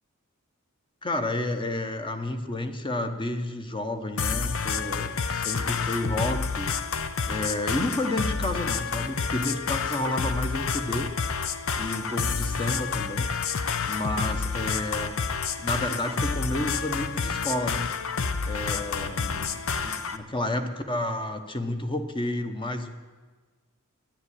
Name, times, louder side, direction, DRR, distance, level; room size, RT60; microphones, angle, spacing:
voice 1, 1.0-6.7 7.3-11.1 11.8-13.3 13.9-15.1 15.6-17.8 18.4-19.5 19.8-23.0, left 1 dB, 25° left, 7 dB, 1.0 m, -31 dB
sound 1, 4.2-20.2, left 5 dB, 70° left, 0.7 m, -29 dB
10.5 x 10.5 x 9.9 m, 1.4 s
head